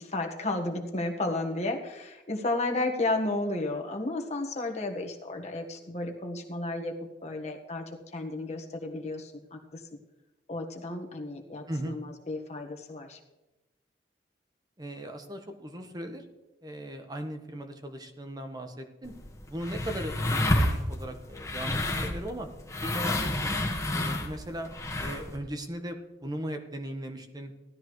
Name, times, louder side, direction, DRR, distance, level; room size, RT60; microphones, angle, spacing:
voice 1, 0.0-6.9 7.2-7.8 8.1-9.8 10.5-13.2, left 2 dB, 40° left, 2 dB, 1.4 m, -33 dB
voice 2, 14.8-16.2 16.6-19.1 19.5-22.5 22.8-23.5 23.9-24.7 25.0-27.5, right 1 dB, 20° right, 5 dB, 1.2 m, -38 dB
sound 1, 19.0-25.4, left 1 dB, 15° left, 1.5 m, -30 dB
17.0 x 12.5 x 3.2 m, 1.0 s
head